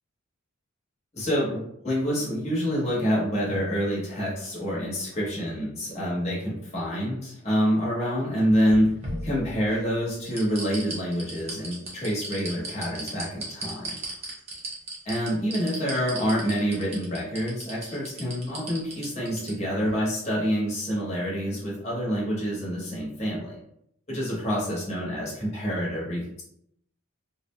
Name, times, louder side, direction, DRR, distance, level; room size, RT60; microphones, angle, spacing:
voice 1, 1.1-8.9 9.2-14.0 15.0-23.6 24.1-26.4, equal, 30° left, -6 dB, 0.9 m, -27 dB
sound 1, 8.5-9.8 10.2-19.5 19.9-20.0, right 2 dB, 30° right, 0.6 m, -36 dB
2.5 x 2.0 x 3.0 m, 0.74 s
head